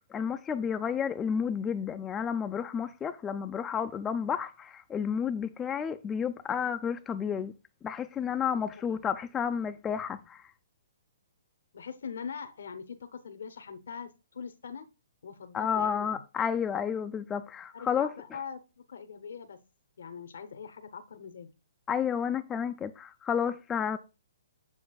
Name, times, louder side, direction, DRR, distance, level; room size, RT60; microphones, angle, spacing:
voice 1, 0.1-7.5 7.8-10.4 15.5-18.1 21.9-24.0, left 7 dB, 15° left, 0.3 m, -31 dB
voice 2, 8.5-9.0 11.7-14.9 15.2-16.2 17.7-19.6 20.0-21.5, left 6 dB, 70° left, 0.8 m, -42 dB
7.1 x 7.1 x 2.3 m
hypercardioid pair, 145°, 0 cm